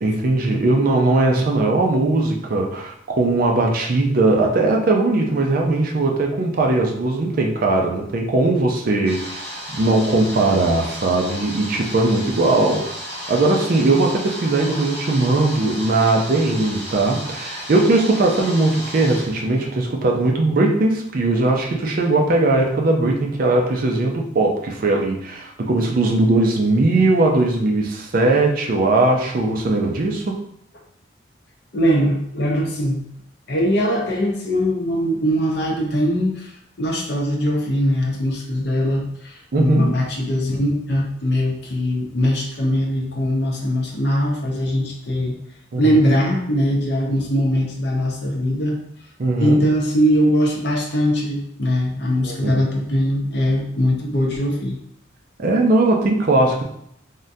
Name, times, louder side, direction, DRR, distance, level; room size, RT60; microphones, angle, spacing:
voice 1, 0.0-30.4 39.5-39.9 45.7-46.1 49.2-49.7 52.2-52.6 55.4-56.6, right 2 dB, 50° right, 1 dB, 0.4 m, -19 dB
sound 1, 9.0-19.7, equal, 10° left, 1.0 m, -34 dB
voice 2, 31.7-33.0 33.5-45.4 45.8-48.8 49.4-54.8, equal, 60° left, -1 dB, 0.6 m, -21 dB
3.5 x 2.2 x 2.6 m, 0.70 s
head